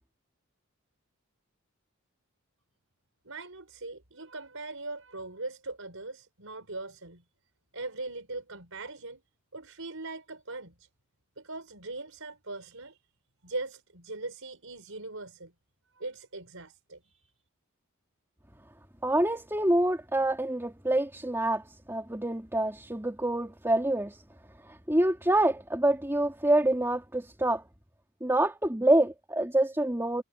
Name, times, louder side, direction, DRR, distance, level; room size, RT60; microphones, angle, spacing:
voice 1, 3.2-7.2 7.7-9.2 9.5-10.9 11.4-13.0 13.4-15.5 16.0-17.3, right 2 dB, 65° right, 6.0 m, -40 dB
voice 2, 19.0-24.2 24.9-27.6 28.2-30.2, right 1 dB, 10° right, 3.0 m, -26 dB
head